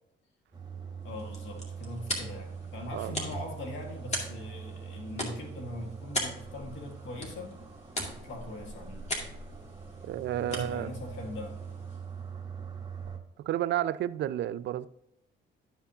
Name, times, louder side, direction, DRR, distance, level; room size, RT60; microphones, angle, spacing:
sound 1, 0.5-13.2, right 6 dB, 20° right, 1.2 m, -43 dB
voice 1, 1.0-7.6 8.2-9.1 10.4-11.6, left 1 dB, 75° left, 1.7 m, -41 dB
sound 2, 1.0-12.2, left 1 dB, 35° left, 2.2 m, -40 dB
voice 2, 10.1-10.9 13.5-14.9, right 12 dB, 65° right, 0.4 m, -31 dB
12.0 x 5.7 x 2.8 m
cardioid pair, 90°, 20 cm